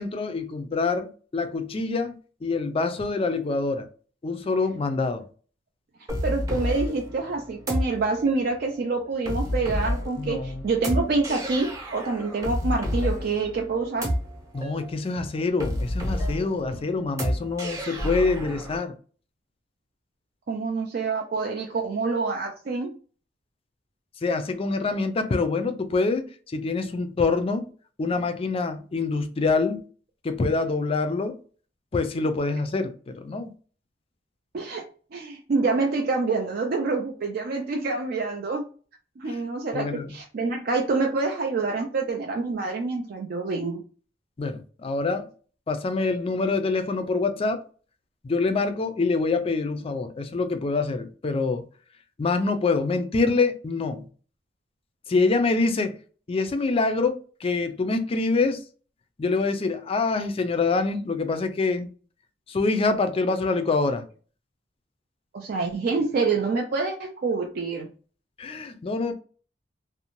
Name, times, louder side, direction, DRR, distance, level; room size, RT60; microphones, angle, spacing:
voice 1, 0.0-3.9 4.2-5.2 10.2-10.7 14.5-18.9 24.2-26.2 26.5-27.7 28.0-29.8 30.2-31.4 31.9-33.5 39.7-40.1 44.4-45.3 45.7-47.6 48.2-51.6 52.2-54.1 55.1-55.9 56.3-58.6 59.2-61.9 62.5-64.0 68.4-69.1, left 3 dB, 30° left, 0.3 m, -25 dB
sound 1, 6.1-18.8, equal, 20° right, 0.7 m, -30 dB
voice 2, 6.2-14.1 20.5-22.9 34.5-34.8 35.1-38.6 39.2-43.8 65.3-67.9, right 3 dB, 55° right, 0.4 m, -27 dB
2.6 x 2.0 x 2.9 m
head